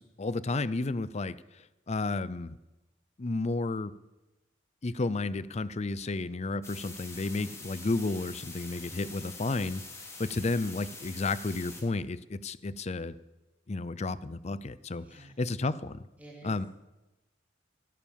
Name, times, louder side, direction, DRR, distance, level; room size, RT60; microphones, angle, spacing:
voice 1, 0.0-1.4 1.9-2.6 3.2-3.9 4.8-9.8 10.2-13.1 13.7-16.0 16.4-16.7, left 3 dB, 35° left, 17 dB, 0.5 m, -32 dB
sound 1, 6.6-11.8, left 3 dB, 15° left, 2.6 m, -45 dB
voice 2, 15.0-15.4 16.2-16.7, right 1 dB, 10° right, -4 dB, 3.0 m, -50 dB
17.0 x 9.5 x 7.1 m, 1.0 s
head